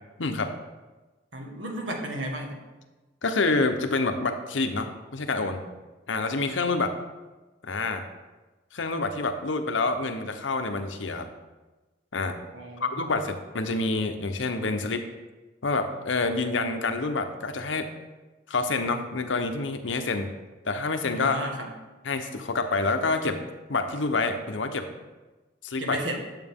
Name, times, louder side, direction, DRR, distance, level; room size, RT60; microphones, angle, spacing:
voice 1, 0.2-0.5 3.2-5.6 6.1-6.9 7.6-8.0 8.7-11.3 12.1-12.4 12.8-15.1 15.6-17.9 18.5-20.3 20.6-21.4 22.0-23.4 23.7-24.9 25.6-26.0, left 3 dB, 85° left, 7 dB, 0.9 m, -27 dB
voice 2, 1.3-2.6 12.5-13.2 21.1-21.7 25.8-26.2, right 1 dB, 85° right, 1 dB, 1.7 m, -33 dB
11.0 x 7.5 x 3.6 m, 1.2 s
head